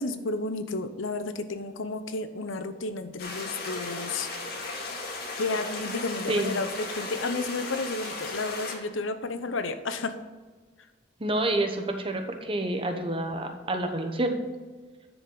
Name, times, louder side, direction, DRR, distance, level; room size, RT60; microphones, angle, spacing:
voice 1, 0.0-4.3 5.3-10.1, left 3 dB, 90° left, 10 dB, 0.8 m, -32 dB
sound 1, 3.2-8.8, left 3 dB, 50° left, 2.0 m, -36 dB
voice 2, 11.2-14.4, right 1 dB, 30° right, 5 dB, 1.0 m, -28 dB
10.0 x 7.2 x 3.9 m, 1.4 s
head